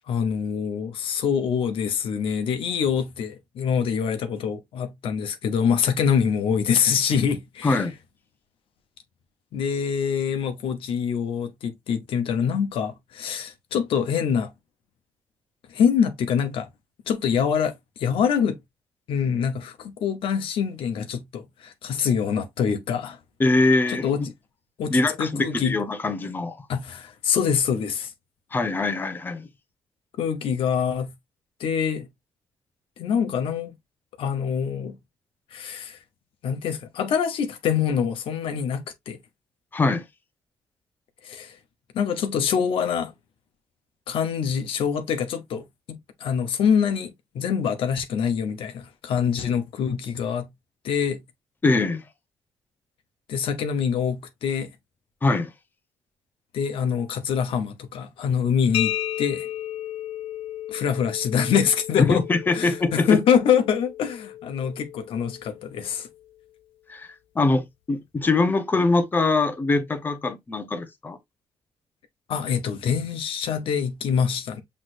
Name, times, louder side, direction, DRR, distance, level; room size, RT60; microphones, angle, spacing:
voice 1, 0.1-7.9 9.5-14.5 15.7-16.7 17.1-18.6 19.1-23.2 23.9-24.2 24.8-25.8 26.7-28.1 30.2-31.1 31.6-32.1 33.0-33.7 34.2-35.0 35.5-36.0 36.4-39.2 41.2-41.6 41.9-43.1 44.1-50.5 50.8-51.2 53.3-54.7 56.5-59.5 60.7-62.2 62.5-66.1 72.3-74.6, left 7 dB, 70° left, 0.9 m, -25 dB
voice 2, 7.6-7.9 23.4-24.1 24.9-26.7 28.5-29.5 39.7-40.0 51.6-52.0 55.2-55.5 62.0-63.2 66.9-67.1 67.3-71.2, left 3 dB, 20° left, 0.8 m, -23 dB
sound 1, 58.7-66.3, left 13 dB, 85° left, 0.4 m, -34 dB
6.1 x 3.2 x 2.5 m
cardioid pair, 130°, 10 cm